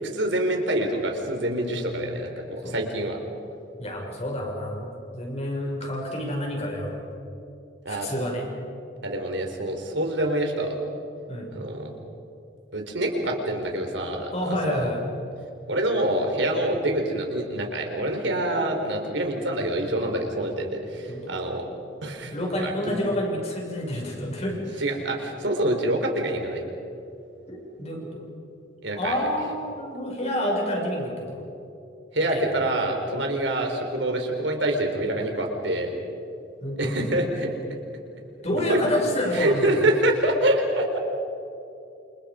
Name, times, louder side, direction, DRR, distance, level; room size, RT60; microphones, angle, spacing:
voice 1, 0.0-3.2 7.8-8.1 9.0-10.7 11.5-11.9 12.7-14.9 15.7-21.6 22.0-23.0 24.8-26.6 28.8-29.1 32.1-35.9 36.8-37.5 38.5-38.8 39.3-41.0, right 1 dB, 70° right, 3 dB, 4.3 m, -26 dB
voice 2, 3.8-7.0 7.9-8.5 11.3-11.5 14.3-15.1 21.1-21.3 22.3-24.8 27.5-28.3 29.0-31.4 32.3-32.4 36.6-37.0 38.4-39.8, left 1 dB, 35° left, 0 dB, 6.1 m, -28 dB
29.0 x 28.0 x 5.2 m, 2.8 s
head